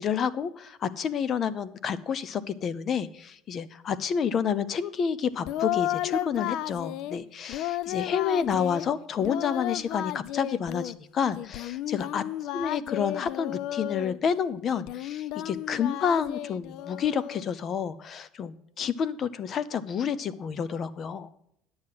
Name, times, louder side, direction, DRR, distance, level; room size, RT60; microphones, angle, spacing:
voice 1, 0.0-12.2 12.5-21.3, left 7 dB, 40° left, 16 dB, 0.7 m, -29 dB
Singing, 5.4-7.2 7.5-8.9 9.2-10.9 11.4-14.2 14.7-17.4, left 14 dB, 65° left, 0.4 m, -33 dB
10.5 x 7.6 x 5.8 m, 0.75 s
cardioid pair, 130°, 0 cm